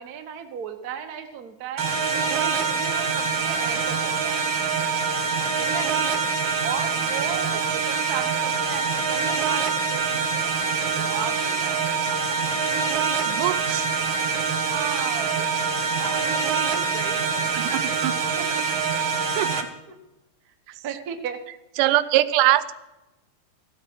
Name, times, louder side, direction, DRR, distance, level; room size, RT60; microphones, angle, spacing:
voice 1, 0.0-1.9 2.3-4.5 5.6-5.9 6.6-10.5 10.9-12.1 14.6-17.5 18.4-18.7 19.9-20.0 20.7-21.4, right 7 dB, 70° right, 5 dB, 0.8 m, -35 dB
sound 1, 1.8-19.6, right 5 dB, 55° right, 2.0 m, -25 dB
voice 2, 13.3-13.9 17.5-18.1 19.4-19.7 21.8-22.7, right 15 dB, 90° right, 14 dB, 2.2 m, -22 dB
14.5 x 8.6 x 6.1 m, 1.0 s
omnidirectional pair, 3.7 m